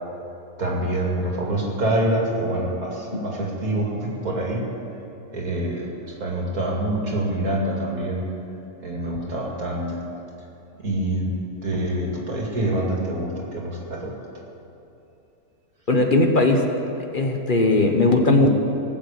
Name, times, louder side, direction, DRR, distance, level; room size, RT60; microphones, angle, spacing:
voice 1, 0.6-4.6 5.3-8.2 8.8-10.0 10.8-14.1, right 1 dB, 70° right, -2 dB, 2.7 m, -26 dB
voice 2, 15.9-16.6 17.1-18.5, left 2 dB, 35° left, 4 dB, 1.3 m, -18 dB
19.5 x 7.6 x 8.2 m, 2.8 s
omnidirectional pair, 1.6 m